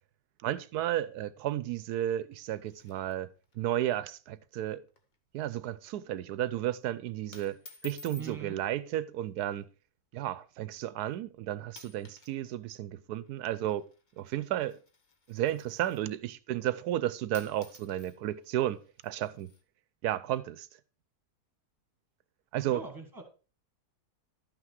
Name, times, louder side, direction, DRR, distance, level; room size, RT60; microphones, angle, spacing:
voice 1, 0.4-3.3 3.6-4.8 5.3-7.6 7.8-9.7 10.1-13.9 14.2-14.8 15.3-19.5 20.0-20.7 22.5-22.8, right 12 dB, 90° right, 1.2 m, -33 dB
sound 1, 2.3-3.6 3.9-4.0 4.3-4.5 4.9-5.2 5.5-5.8 6.6-6.8 7.3-8.4 9.4-9.6 10.3-10.4 11.1-11.3 11.7-12.4 12.6-16.2 17.0-17.1 17.3-19.6, left 4 dB, 35° left, 1.1 m, -54 dB
voice 2, 8.2-8.6 22.7-23.2, right 5 dB, 15° right, 2.0 m, -42 dB
12.0 x 6.1 x 4.7 m
omnidirectional pair, 1.6 m